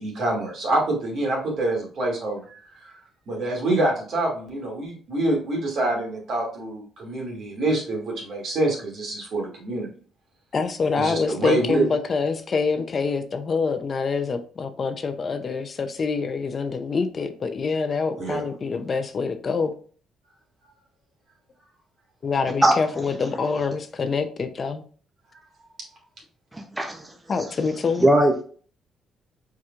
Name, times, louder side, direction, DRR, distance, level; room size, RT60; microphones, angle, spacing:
voice 1, 0.0-2.9 3.3-9.9 11.0-11.9 18.2-18.5, right 2 dB, 65° right, -2 dB, 2.5 m, -26 dB
voice 2, 10.5-19.7 22.2-24.9 27.3-28.1, left 4 dB, 45° left, 8 dB, 0.6 m, -26 dB
voice 3, 26.5-27.1 28.0-28.4, right 1 dB, 15° right, 3 dB, 0.7 m, -19 dB
4.8 x 4.4 x 2.5 m, 0.43 s
cardioid pair, 90°, 0 cm